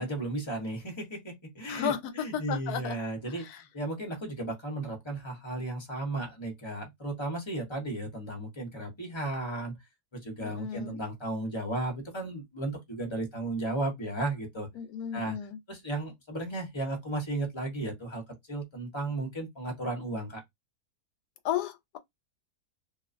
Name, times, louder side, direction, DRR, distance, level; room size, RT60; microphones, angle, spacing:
voice 1, 0.0-3.5 3.7-9.7 10.1-14.7 15.1-15.4 15.7-18.2 18.5-20.4, right 2 dB, 25° left, 0.7 m, -34 dB
voice 2, 1.7-2.0 2.3-3.0 10.4-11.0 14.8-15.6 21.4-22.0, left 9 dB, 80° left, 1.1 m, -33 dB
2.6 x 2.4 x 2.5 m
omnidirectional pair, 1.7 m